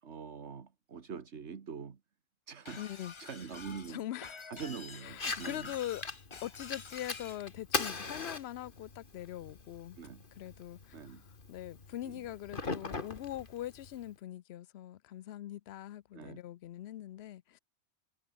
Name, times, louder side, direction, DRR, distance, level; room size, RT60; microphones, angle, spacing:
voice 1, 0.0-2.0 2.5-2.8 3.2-4.0 4.5-5.7 10.0-10.2 10.9-11.2 12.0-12.3 16.1-16.4, right 6 dB, 75° right, 1.8 m, -44 dB
Shatter, 2.7-7.4, left 5 dB, 30° left, 0.7 m, -48 dB
voice 2, 2.8-3.1 3.9-4.3 5.0-6.0 6.4-10.0 10.4-11.0 11.5-17.6, left 13 dB, 70° left, 0.8 m, -42 dB
Fire, 5.1-14.1, left 4 dB, 50° left, 2.1 m, -41 dB
omnidirectional pair, 1.2 m